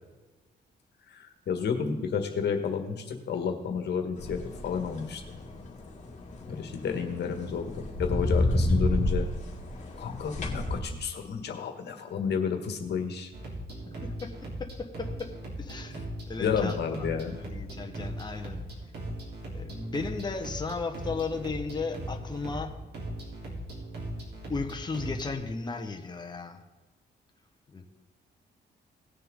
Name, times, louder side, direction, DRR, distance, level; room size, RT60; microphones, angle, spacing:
voice 1, 1.1-5.2 6.5-9.3 10.0-13.3 16.4-17.4, left 6 dB, 70° left, 5 dB, 1.6 m, -31 dB
sound 1, 4.2-10.8, left 1 dB, 45° left, 2.5 m, -30 dB
sound 2, 13.3-25.3, right 1 dB, 65° right, 3.4 m, -39 dB
voice 2, 14.0-14.3 14.6-15.3 15.6-16.8 17.2-18.6 19.5-22.7 24.5-26.6 27.7-27.9, left 4 dB, 25° left, 3 dB, 1.2 m, -35 dB
18.5 x 6.7 x 3.8 m, 1.2 s
cardioid pair, 100°, 18 cm